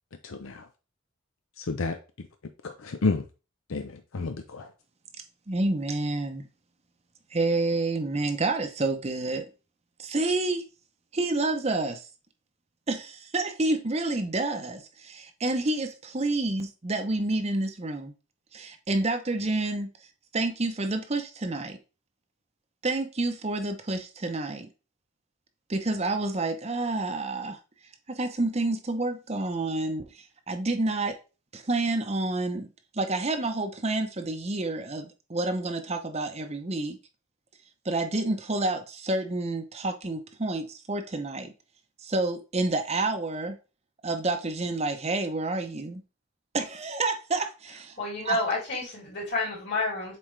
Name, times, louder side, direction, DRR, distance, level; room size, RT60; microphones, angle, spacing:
voice 1, 0.2-0.7 1.6-2.0 2.6-3.2 3.7-4.7, left 3 dB, 85° left, 0.7 m, -30 dB
voice 2, 5.5-6.4 7.3-9.5 10.0-10.6 11.1-12.1 12.9-18.1 18.5-19.9 20.3-21.8 22.8-24.7 25.7-27.6 28.1-31.2 31.5-32.7 32.9-37.0 37.8-41.5 42.0-43.6 44.0-46.0 46.5-48.0 48.3-48.4, right 2 dB, 30° right, 0.7 m, -29 dB
voice 3, 48.0-50.2, left 2 dB, 55° left, 3.5 m, -29 dB
7.3 x 4.2 x 3.3 m
head